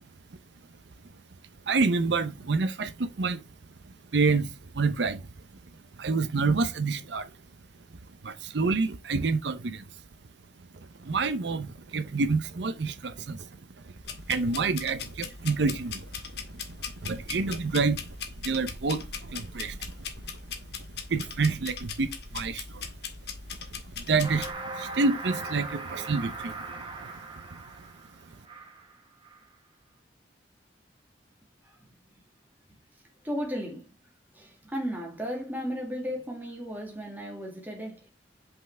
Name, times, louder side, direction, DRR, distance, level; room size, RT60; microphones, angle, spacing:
voice 1, 1.7-3.4 4.1-5.2 6.0-7.3 8.2-9.9 11.0-13.5 14.3-16.1 16.7-16.8 17.0-18.1 18.4-19.9 21.1-22.9 24.0-26.7 26.9-27.1 27.5-27.6, right 4 dB, 70° right, 0.6 m, -28 dB
sound 1, 14.0-24.5, left 5 dB, 60° left, 1.2 m, -40 dB
sound 2, 24.2-29.0 29.2-29.5, right 3 dB, 25° right, 1.1 m, -39 dB
voice 2, 33.2-34.0 34.3-38.1, equal, 10° right, 1.9 m, -35 dB
5.7 x 5.4 x 3.3 m
head